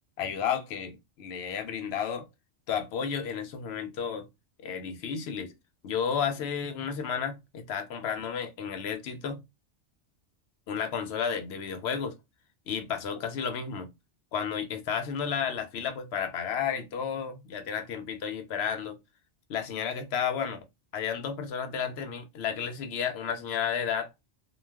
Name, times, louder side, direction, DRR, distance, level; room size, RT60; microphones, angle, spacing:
voice 1, 0.2-2.3 2.7-4.3 4.6-5.5 5.8-9.4 10.7-12.2 12.7-13.9 14.3-19.0 19.5-20.6 20.9-24.1, left 7 dB, 70° left, 0.8 m, -32 dB
2.3 x 2.2 x 3.3 m
omnidirectional pair, 1.2 m